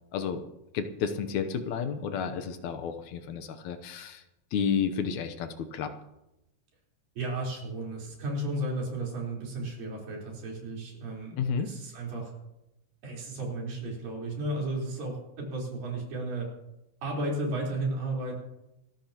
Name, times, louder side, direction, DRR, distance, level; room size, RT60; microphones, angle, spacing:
voice 1, 0.7-4.2 4.5-5.9 11.4-11.7, left 6 dB, 75° left, 7 dB, 1.7 m, -31 dB
voice 2, 7.2-12.3 13.0-16.5 17.0-18.3, right 2 dB, 65° right, -3 dB, 5.8 m, -34 dB
27.0 x 13.0 x 3.0 m, 0.91 s
omnidirectional pair, 4.5 m